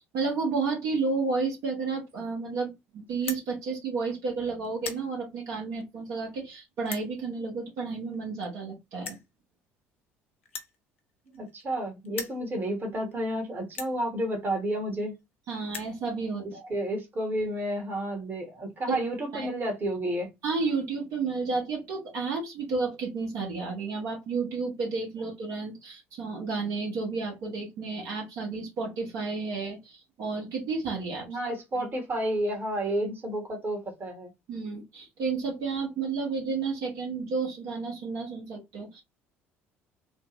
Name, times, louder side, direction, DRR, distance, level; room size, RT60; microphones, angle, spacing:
voice 1, 0.1-9.2 15.5-16.7 18.9-19.0 19.3-19.5 20.4-31.5 34.5-39.0, right 4 dB, 55° right, 1.4 m, -31 dB
sound 1, 3.1-3.5 4.1-4.3 4.6-5.1 5.8-5.9 6.8-7.1 8.1-8.2 8.4-8.5 9.0-9.3 10.4-11.8 12.0-12.4 13.1-13.2 13.7-14.0 14.9-15.0 15.2-15.3 15.5-16.0, left 5 dB, 80° left, 0.5 m, -39 dB
voice 2, 11.3-15.2 16.7-20.3 31.3-34.3, right 1 dB, 30° right, 1.5 m, -31 dB
3.4 x 2.4 x 3.1 m
figure-of-eight pair, 55°, 7 cm